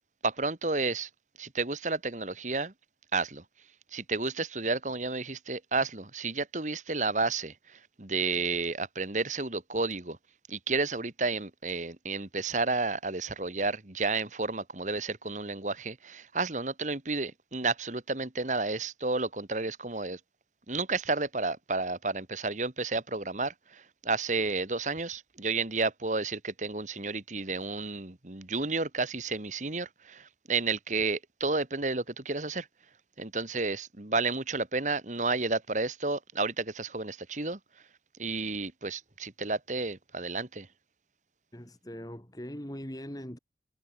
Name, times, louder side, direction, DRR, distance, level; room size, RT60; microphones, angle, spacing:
voice 1, 0.2-1.1 1.4-2.7 3.1-3.4 3.9-10.2 10.5-20.2 20.7-32.7 33.2-37.6 38.2-40.7, right 3 dB, 45° right, 1.8 m, -31 dB
voice 2, 41.5-43.4, equal, 20° left, 2.9 m, -41 dB
head